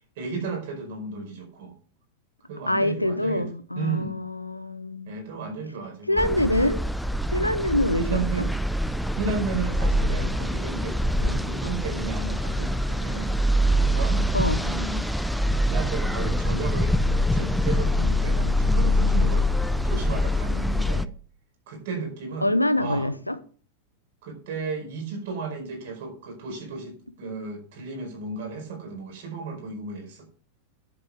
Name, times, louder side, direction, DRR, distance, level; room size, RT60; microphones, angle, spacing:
voice 1, 0.2-1.7 2.5-3.5 3.7-4.2 5.1-6.2 8.0-8.5 9.1-13.4 13.8-14.3 14.6-15.0 15.6-21.1 21.7-23.1 24.2-30.3, right 4 dB, 55° right, 5.0 m, -34 dB
voice 2, 2.7-5.1 6.1-6.8 7.3-8.5 14.3-14.6 22.4-23.4, left 1 dB, 85° left, 0.9 m, -25 dB
sound 1, 6.2-21.1, left 1 dB, ahead, 0.5 m, -24 dB
10.5 x 7.6 x 4.9 m
figure-of-eight pair, 90°, 0 cm